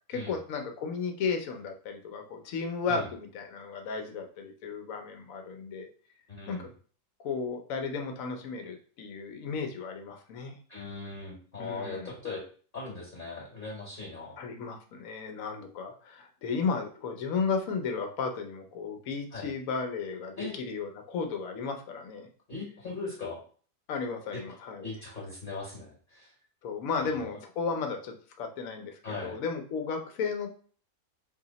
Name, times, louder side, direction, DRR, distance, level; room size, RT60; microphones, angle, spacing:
voice 1, 0.1-5.9 6.5-6.7 7.2-10.5 11.6-12.1 14.4-22.3 23.9-24.9 26.6-30.5, left 5 dB, 65° left, 5 dB, 0.9 m, -34 dB
voice 2, 6.3-6.7 10.7-12.4 12.7-14.4 19.3-19.5 20.4-20.5 22.5-23.4 24.3-24.4 24.8-26.3 27.0-27.3 29.0-29.4, left 3 dB, 40° left, -4 dB, 1.0 m, -39 dB
2.9 x 2.8 x 3.9 m, 0.43 s
omnidirectional pair, 1.8 m